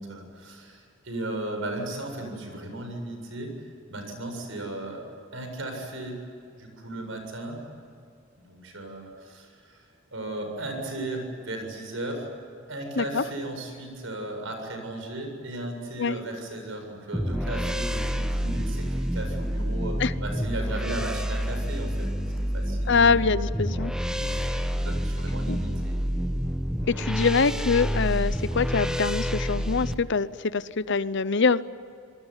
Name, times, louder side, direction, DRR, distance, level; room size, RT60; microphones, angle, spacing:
voice 1, 0.0-3.5 3.9-5.0 5.3-6.2 6.5-7.6 8.5-12.3 12.7-22.2 22.5-23.1 24.1-24.5 24.8-26.0, right 1 dB, 75° right, 4 dB, 7.5 m, -36 dB
sound 1, 17.1-29.9, equal, 5° right, 1.3 m, -28 dB
voice 2, 22.9-23.9 25.5-25.6 26.9-31.6, left 4 dB, 65° left, 16 dB, 0.8 m, -24 dB
28.0 x 20.5 x 9.9 m, 2.4 s
head